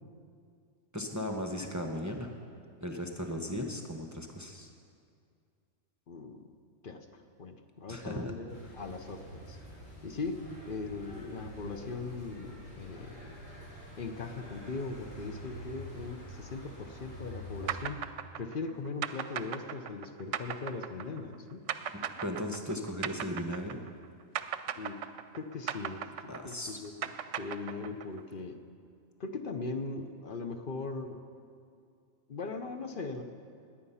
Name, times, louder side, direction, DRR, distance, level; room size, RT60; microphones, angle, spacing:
voice 1, 0.9-2.3 2.8-4.7 7.9-8.3 21.9-23.8 26.3-26.8, equal, 15° right, 3 dB, 0.8 m, -37 dB
voice 2, 6.1-6.5 6.8-9.6 10.0-13.4 14.0-18.1 18.4-21.6 24.8-25.0 25.3-27.1 27.4-28.6 29.2-31.2 32.3-33.2, left 3 dB, 45° left, 7 dB, 0.9 m, -39 dB
sound 1, 8.5-17.8, equal, 80° left, 3.8 m, -47 dB
sound 2, 17.7-24.1 24.4-28.2, right 9 dB, 70° right, 0.9 m, -37 dB
20.5 x 8.6 x 5.7 m, 2.3 s
omnidirectional pair, 1.3 m